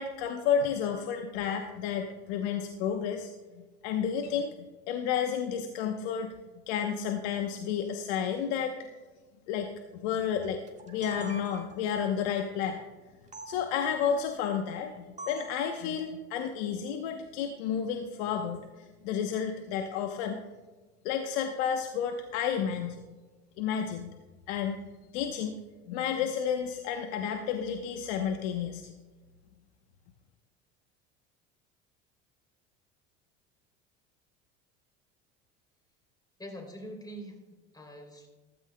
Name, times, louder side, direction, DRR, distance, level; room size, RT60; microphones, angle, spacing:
voice 1, 0.0-3.3 3.5-4.5 4.9-6.3 6.7-8.9 9.5-9.7 9.9-12.8 13.5-20.4 21.0-23.0 23.6-24.1 24.5-24.8 25.1-25.6 25.9-28.9, left 7 dB, 75° left, 5 dB, 0.9 m, -31 dB
sound 1, 10.7-11.9 13.3-13.5 15.2-15.6, right 2 dB, 20° right, 1.6 m, -44 dB
voice 2, 36.4-38.3, equal, 10° left, 3 dB, 3.1 m, -44 dB
15.0 x 13.5 x 2.2 m, 1.3 s
hypercardioid pair, 85°, 32 cm